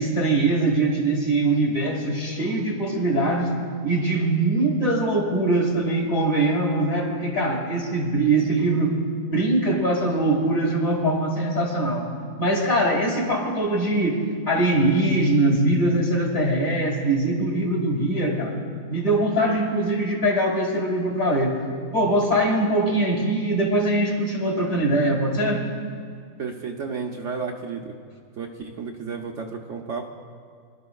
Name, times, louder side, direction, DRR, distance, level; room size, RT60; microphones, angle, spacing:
voice 1, 0.0-3.5 3.8-8.9 9.3-12.1 12.4-18.6 18.9-21.6 21.9-25.6, right 2 dB, 55° left, -2 dB, 2.8 m, -22 dB
voice 2, 26.4-27.9 28.4-30.1, right 5 dB, 60° right, 1 dB, 1.0 m, -32 dB
24.5 x 12.0 x 2.3 m, 2.1 s
omnidirectional pair, 1.7 m